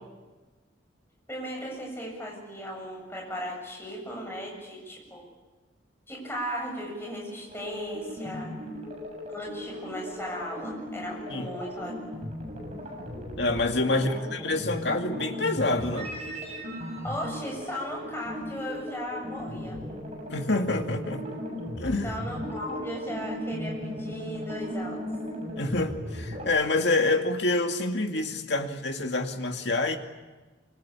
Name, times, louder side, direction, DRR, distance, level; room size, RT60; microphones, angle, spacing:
voice 1, 1.3-5.2 6.1-8.5 9.3-11.9 13.9-14.8 17.0-19.8 22.0-25.0, equal, 10° left, 0 dB, 7.6 m, -36 dB
sound 1, 7.5-26.4, equal, 35° right, 7.6 m, -37 dB
voice 2, 13.4-16.1 20.3-21.4 21.8-22.2 25.6-30.0, left 2 dB, 65° left, 4 dB, 2.3 m, -27 dB
25.0 x 24.5 x 8.6 m, 1.2 s
head